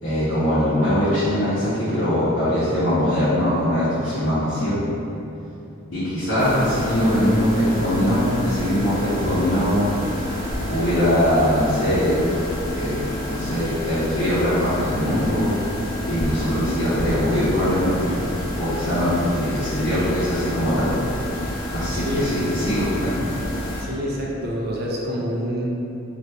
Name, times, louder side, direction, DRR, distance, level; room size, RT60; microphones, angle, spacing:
voice 1, 0.0-4.8 5.9-9.8 10.7-12.3 12.7-12.9 13.2-15.5 16.1-18.1 18.6-20.9 21.7-23.1, equal, 70° left, -15 dB, 0.9 m, -21 dB
sound 1, 6.4-23.8, left 1 dB, 45° left, 1.0 m, -29 dB
voice 2, 21.9-22.4 23.8-25.7, equal, 50° right, -3 dB, 0.5 m, -27 dB
2.9 x 2.5 x 3.3 m, 2.7 s
head